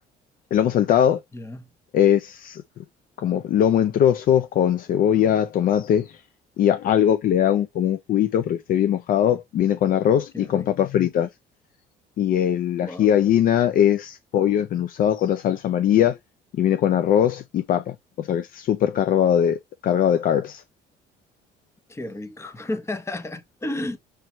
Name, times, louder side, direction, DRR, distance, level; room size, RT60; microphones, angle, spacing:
voice 1, 0.5-1.2 1.9-2.6 3.2-6.1 6.6-11.3 12.2-16.2 16.5-20.6, left 10 dB, 55° left, 0.4 m, -21 dB
voice 2, 1.3-1.7 10.3-10.7 12.8-13.1 21.9-24.0, left 1 dB, 15° left, 0.8 m, -32 dB
4.6 x 3.2 x 2.9 m
cardioid pair, 110°, 17 cm